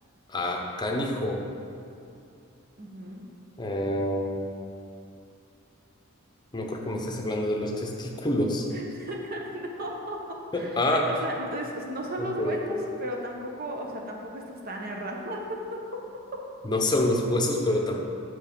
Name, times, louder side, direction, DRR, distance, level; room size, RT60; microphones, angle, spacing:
voice 1, 0.3-1.4 3.6-4.4 6.5-8.7 10.5-11.1 12.4-12.8 16.6-18.0, left 1 dB, 20° left, 1 dB, 0.8 m, -27 dB
voice 2, 2.8-3.2 8.7-10.2 10.5-16.0 16.3-16.4, equal, 45° right, 0 dB, 1.0 m, -35 dB
7.3 x 6.2 x 5.3 m, 2.5 s
head